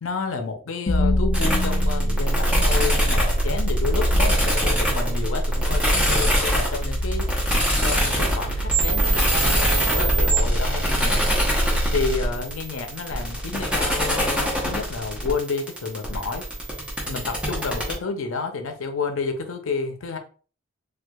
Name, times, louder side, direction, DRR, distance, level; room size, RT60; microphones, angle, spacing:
voice 1, 0.0-7.3 7.8-11.2 11.9-16.5 17.1-20.2, left 4 dB, 80° left, 5 dB, 0.6 m, -30 dB
sound 1, 0.9-13.0, equal, 35° left, 0.4 m, -25 dB
sound 2, 1.3-17.9, equal, 5° right, 0.8 m, -24 dB
4.4 x 2.4 x 2.3 m, 0.39 s
head